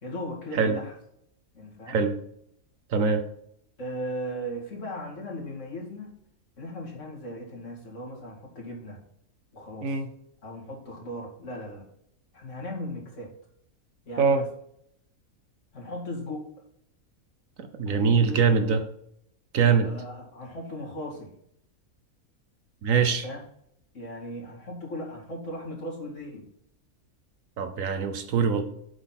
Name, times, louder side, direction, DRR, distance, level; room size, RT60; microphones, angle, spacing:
voice 1, 0.0-0.9 1.5-2.0 3.8-6.1 6.6-9.0 9.5-10.0 10.4-11.9 12.3-13.3 14.1-14.5 15.7-16.5 17.9-18.6 19.8-21.3 23.2-23.4 23.9-26.5, equal, 55° left, -2 dB, 2.6 m, -37 dB
voice 2, 2.9-3.2 9.8-10.1 14.2-14.4 17.6-18.8 19.5-19.9 22.8-23.2 27.6-28.6, right 5 dB, 65° right, 8 dB, 1.2 m, -23 dB
7.8 x 6.2 x 4.1 m, 0.71 s
omnidirectional pair, 1.5 m